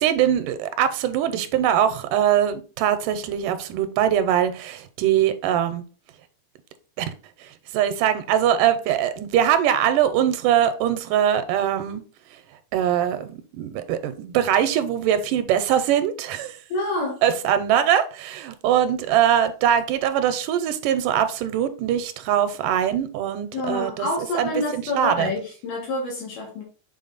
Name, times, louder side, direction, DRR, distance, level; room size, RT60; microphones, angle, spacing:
voice 1, 0.0-5.8 7.0-7.1 7.4-12.0 12.7-16.6 17.2-24.1 24.3-25.3, right 10 dB, 90° right, 2.3 m, -22 dB
voice 2, 16.7-17.2 23.5-26.6, left 2 dB, 85° left, 3.2 m, -27 dB
7.1 x 4.0 x 4.0 m
omnidirectional pair, 3.7 m